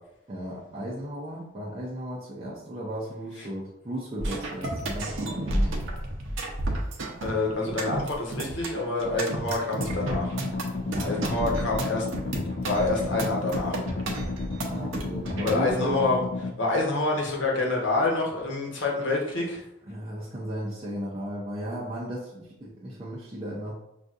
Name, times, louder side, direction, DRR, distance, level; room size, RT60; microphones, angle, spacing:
voice 1, 0.3-5.9 10.9-11.3 14.6-16.0 19.9-23.8, right 1 dB, 25° right, -6 dB, 0.6 m, -35 dB
sound 1, 4.2-15.6, right 1 dB, 75° right, 0.7 m, -32 dB
voice 2, 7.2-10.4 11.0-12.1 12.6-13.8 15.4-16.2 16.6-19.6, left 2 dB, 65° left, -2 dB, 1.0 m, -27 dB
sound 2, 9.8-16.5, left 3 dB, 45° left, 0.4 m, -33 dB
5.6 x 2.5 x 2.5 m, 0.85 s
head